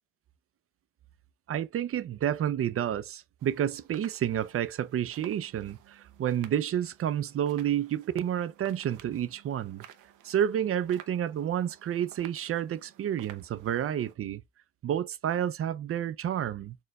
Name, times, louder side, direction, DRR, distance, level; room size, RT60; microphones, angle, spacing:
voice 1, 1.5-9.8 10.2-14.4 14.8-16.8, right 10 dB, 50° right, 0.5 m, -30 dB
sound 1, 3.4-14.1, right 10 dB, 85° right, 0.7 m, -54 dB
4.4 x 3.1 x 2.3 m
cardioid pair, 90°, 30 cm